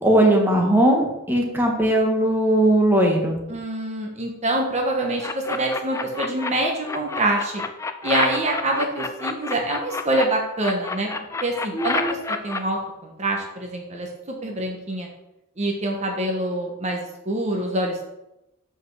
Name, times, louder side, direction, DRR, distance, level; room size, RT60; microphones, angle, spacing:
voice 1, 0.0-3.4 11.7-12.2, right 1 dB, 10° right, 0 dB, 1.4 m, -19 dB
voice 2, 3.5-7.6 8.0-11.1 11.4-15.1 15.6-18.0, right 1 dB, 35° right, 1 dB, 1.1 m, -25 dB
sound 1, 5.2-6.5 6.8-10.2 10.6-12.6, left 3 dB, 15° left, 0.4 m, -28 dB
5.3 x 5.2 x 6.3 m, 0.91 s
head